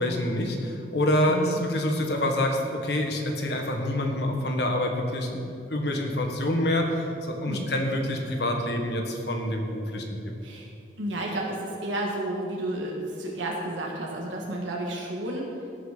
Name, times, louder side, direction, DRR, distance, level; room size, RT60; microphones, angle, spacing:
voice 1, 0.0-10.3, left 1 dB, 65° left, 2 dB, 1.5 m, -27 dB
voice 2, 1.3-1.6 7.4-7.7 10.4-10.7 11.0-15.5, right 1 dB, 90° right, -2 dB, 1.6 m, -31 dB
17.5 x 6.2 x 5.0 m, 2.5 s
head